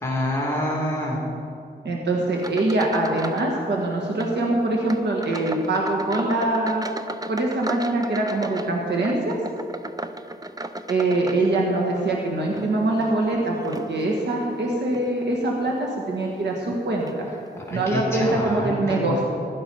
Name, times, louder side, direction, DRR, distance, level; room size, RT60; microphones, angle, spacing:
voice 1, 0.0-1.2 17.7-19.2, left 1 dB, 15° left, -4 dB, 2.7 m, -26 dB
voice 2, 1.8-6.9 7.3-9.4 10.9-17.3 17.7-19.2, right 2 dB, 80° right, -1 dB, 1.7 m, -23 dB
sound 1, 2.4-3.5 3.8-4.4 4.8-11.9 12.4-14.3 14.9-15.1 15.7-15.8 16.7-16.8 17.1-17.2, right 2 dB, 20° right, 0.7 m, -36 dB
15.5 x 12.0 x 5.5 m, 2.6 s
wide cardioid pair, 90°, 17 cm